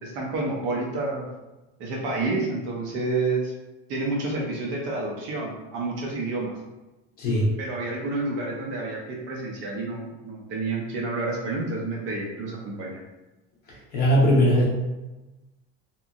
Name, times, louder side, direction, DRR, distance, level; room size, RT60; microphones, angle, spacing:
voice 1, 0.0-1.3 1.8-3.5 3.9-6.5 7.6-13.0, right 2 dB, 40° right, -2 dB, 0.5 m, -29 dB
voice 2, 7.2-7.5 13.9-14.6, equal, 30° left, -5 dB, 0.8 m, -19 dB
2.8 x 2.5 x 2.3 m, 1.1 s
cardioid pair, 175°, 29 cm